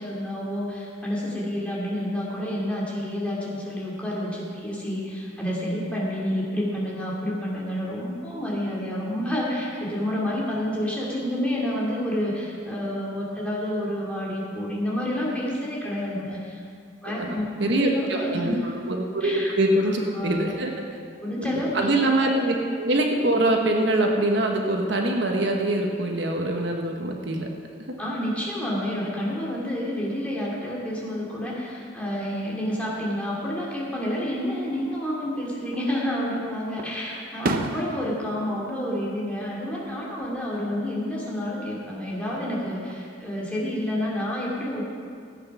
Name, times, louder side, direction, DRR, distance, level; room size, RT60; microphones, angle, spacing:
voice 1, 0.0-16.6 17.0-18.6 19.2-19.5 19.8-20.5 21.2-22.3 28.0-44.9, left 1 dB, 5° left, -6 dB, 2.3 m, -29 dB
voice 2, 17.0-20.7 21.7-27.5, right 1 dB, 60° right, 2 dB, 1.1 m, -24 dB
Fireworks, 35.6-36.3 36.8-39.9 40.2-40.8 42.3-43.1, right 2 dB, 45° right, 0.6 m, -33 dB
15.0 x 8.3 x 5.9 m, 2.3 s
head